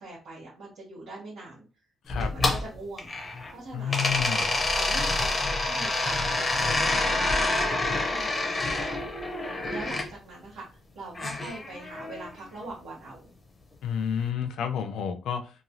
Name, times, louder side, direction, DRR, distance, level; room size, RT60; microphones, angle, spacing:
voice 1, 0.0-1.7 2.2-9.3 9.7-10.7 10.9-13.3, right 2 dB, 90° right, 1.1 m, -42 dB
sound 1, 2.1-3.5 3.9-10.1 11.1-12.3, left 2 dB, 15° left, 0.5 m, -27 dB
voice 2, 3.7-4.4 13.8-15.5, left 8 dB, 80° left, 0.4 m, -30 dB
3.0 x 2.2 x 2.6 m
cardioid pair, 175°, 0 cm